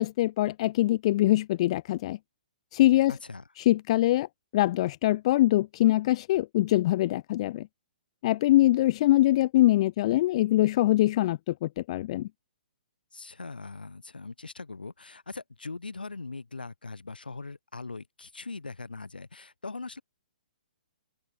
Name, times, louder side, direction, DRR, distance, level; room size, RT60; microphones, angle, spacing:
voice 1, 0.0-2.2 2.7-3.1 3.6-4.3 4.5-7.7 8.2-12.3, left 15 dB, 40° left, 0.4 m, -23 dB
voice 2, 3.1-3.4 13.1-20.0, left 3 dB, 85° left, 4.3 m, -41 dB
figure-of-eight pair, 130°, 5 cm